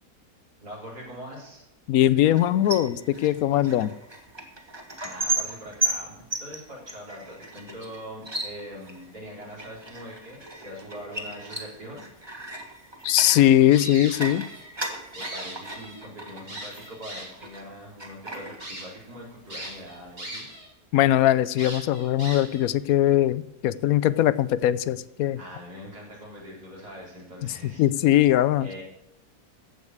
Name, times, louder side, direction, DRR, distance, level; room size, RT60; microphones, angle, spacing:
voice 1, 0.6-1.7 4.7-4.8 5.0-12.1 15.1-20.5 25.4-28.2 28.6-28.8, equal, 85° right, -4 dB, 4.4 m, -42 dB
voice 2, 1.9-3.9 13.0-14.4 20.9-25.4 27.4-28.7, left 12 dB, 70° left, 17 dB, 1.0 m, -21 dB
sound 1, 2.3-17.7 18.0-19.2 19.5-20.2, right 2 dB, 15° right, 1.4 m, -36 dB
sound 2, 13.7-14.7 15.0-16.0 16.5-17.5 18.0-18.1 18.6-18.8 19.5-20.7 21.0-21.1 21.6-22.7, right 1 dB, 60° right, 5.4 m, -39 dB
14.5 x 5.4 x 7.9 m, 0.83 s
omnidirectional pair, 1.6 m